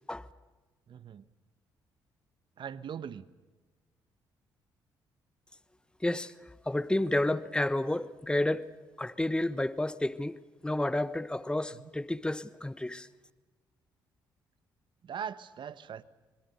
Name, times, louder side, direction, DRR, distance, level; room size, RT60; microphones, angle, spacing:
voice 1, 0.9-1.3 2.6-3.2 11.7-11.9 15.0-16.0, right 8 dB, 55° right, 1.1 m, -40 dB
voice 2, 6.0-6.3 6.7-8.7 9.0-10.4 10.6-13.1, left 1 dB, 10° left, 1.1 m, -30 dB
26.0 x 21.5 x 6.7 m
supercardioid pair, 55°, 9 cm